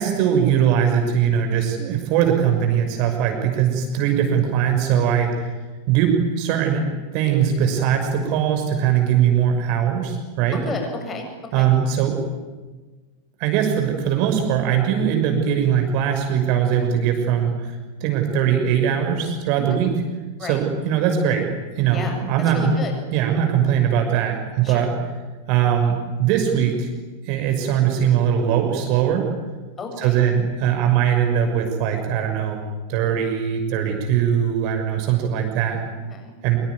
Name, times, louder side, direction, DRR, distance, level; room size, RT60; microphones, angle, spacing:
voice 1, 0.0-5.5 5.9-6.8 7.1-10.6 11.5-12.2 13.4-17.8 18.0-19.9 20.4-21.4 21.8-22.8 23.1-24.9 25.5-26.9 27.3-29.3 30.0-32.6 32.9-35.8 36.4-36.6, right 8 dB, 45° right, 4 dB, 6.1 m, -20 dB
voice 2, 10.5-11.3 11.5-11.7 19.6-19.8 20.4-20.6 21.9-22.1 22.5-22.9 24.6-24.9 29.8-30.2 35.8-36.3, left 4 dB, 20° left, 4 dB, 7.8 m, -32 dB
25.5 x 23.5 x 9.7 m, 1.3 s
figure-of-eight pair, 90°, 0 cm